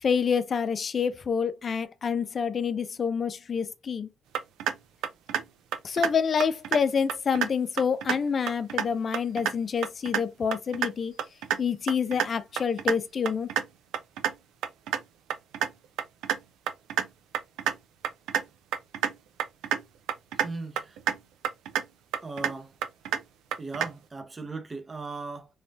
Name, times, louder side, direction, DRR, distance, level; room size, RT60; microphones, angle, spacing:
voice 1, 0.0-4.1 5.8-11.2 11.6-13.5, left 6 dB, 45° left, 0.3 m, -27 dB
sound 1, 4.4-4.7 5.0-5.4 5.7-6.1 6.4-6.8 7.1-7.5 7.8-8.2 8.5-8.9 9.1-9.5 9.8-10.2 10.5-10.9 11.2-11.6 11.9-12.3 12.6-12.9 13.3-13.6 13.9-14.3 14.6-15.0 15.3-15.7 16.0-16.4 16.7-17.1 17.3-17.7 18.0-18.4 18.7-19.1 19.4-19.8 20.1-20.5 20.8-21.2 21.4-21.8 22.1-22.5 22.8-23.2 23.5-23.9, right 9 dB, 90° right, 0.4 m, -27 dB
voice 2, 20.4-21.0 22.2-22.7 23.6-25.5, right 3 dB, 25° right, 0.6 m, -37 dB
3.1 x 2.1 x 2.5 m
cardioid pair, 90°, 0 cm